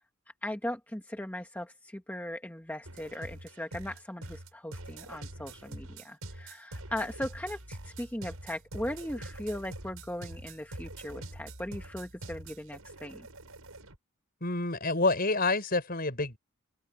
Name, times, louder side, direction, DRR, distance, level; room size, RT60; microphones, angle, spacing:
voice 1, 0.4-13.3, left 1 dB, 10° left, 1.3 m, -38 dB
sound 1, 2.9-14.0, right 1 dB, 80° right, 6.1 m, -45 dB
voice 2, 14.4-16.4, left 3 dB, 45° left, 5.8 m, -28 dB
open air
head